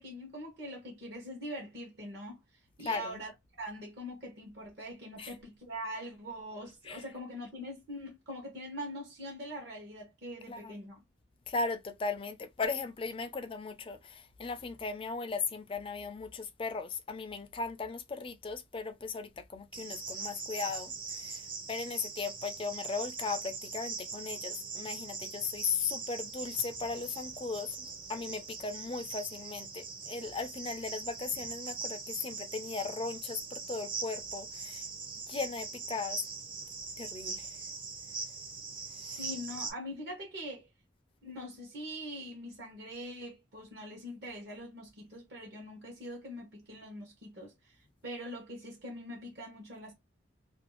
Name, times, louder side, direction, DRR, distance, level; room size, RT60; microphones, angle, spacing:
voice 1, 0.0-2.4 2.8-3.3 3.6-11.0 39.2-40.7 41.2-49.9, equal, 55° right, 0.9 m, -43 dB
voice 2, 2.9-3.2 5.2-5.3 6.9-7.0 10.5-10.7 11.5-21.4 21.7-34.8 35.3-36.2 37.0-37.5 39.0-39.2, left 4 dB, 25° left, 0.4 m, -37 dB
Cricket, 19.7-39.7, right 5 dB, 25° right, 0.5 m, -41 dB
2.5 x 2.3 x 2.9 m
head